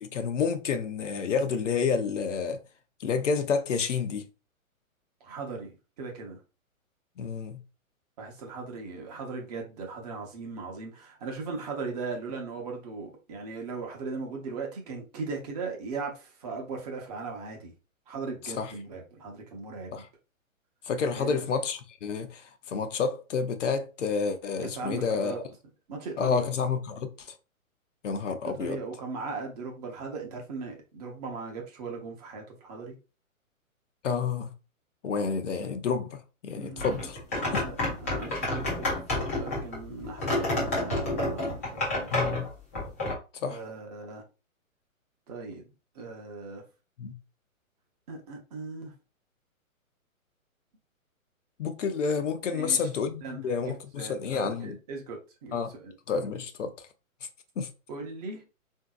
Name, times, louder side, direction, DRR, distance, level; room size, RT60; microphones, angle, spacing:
voice 1, 0.0-2.6 3.0-4.2 7.2-7.6 18.6-18.7 19.9-20.1 20.9-25.3 26.2-27.3 28.0-28.8 34.0-34.5 35.0-37.2 37.5-37.6 42.1-42.5 43.4-43.6 47.0-47.1 51.6-54.8 55.5-55.7 56.1-56.7 57.6-57.7, left 5 dB, 60° left, 0.6 m, -29 dB
voice 2, 5.2-5.7 6.0-6.4 8.2-17.7 18.1-20.0 21.2-21.5 24.6-25.5 25.9-26.5 28.4-32.9 36.5-36.9 37.4-42.1 43.5-44.2 45.3-45.6 45.9-46.6 48.1-48.9 52.5-52.9 53.2-55.9 57.9-58.4, right 4 dB, 30° right, 0.7 m, -38 dB
sound 1, 36.8-43.1, left 1 dB, 10° left, 0.4 m, -29 dB
3.7 x 2.7 x 2.3 m
figure-of-eight pair, 130°, 42 cm